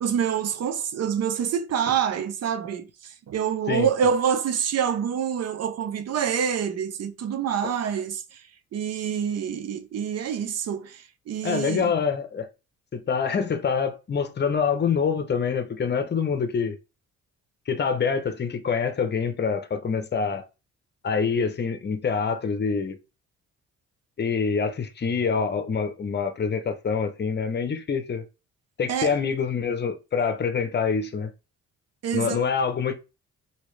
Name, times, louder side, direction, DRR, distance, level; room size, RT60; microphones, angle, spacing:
voice 1, 0.0-8.4 8.7-11.9 28.9-29.1 32.0-32.4, right 8 dB, 55° right, 0.7 m, -26 dB
voice 2, 11.4-12.5 12.9-16.8 17.7-20.4 21.0-23.0 24.2-28.2 28.8-31.3 32.1-33.0, left 6 dB, 35° left, 0.8 m, -26 dB
3.1 x 2.8 x 3.1 m
cardioid pair, 90°, 30 cm